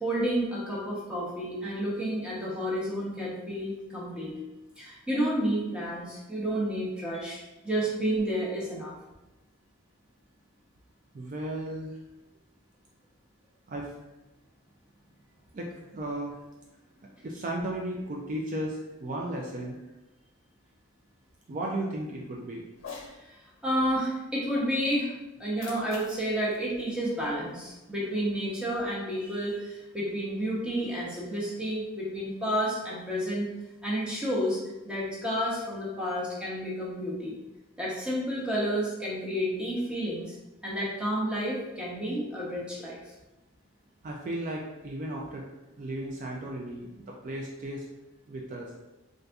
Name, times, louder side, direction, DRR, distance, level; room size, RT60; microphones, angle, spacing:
voice 1, 0.0-4.3 4.8-9.0 23.0-25.1 25.4-33.5 33.8-34.6 34.8-37.4 37.8-40.4 40.6-43.0, equal, 5° right, -6 dB, 0.7 m, -30 dB
voice 2, 11.1-12.0 13.7-13.9 15.5-16.3 17.2-19.8 21.5-22.6 44.0-45.4 45.8-47.8 48.3-48.7, right 1 dB, 35° right, -1 dB, 0.3 m, -35 dB
Cat, 22.7-23.2 25.3-27.7, left 4 dB, 60° left, 0.6 m, -46 dB
4.0 x 2.5 x 2.3 m, 1.0 s
head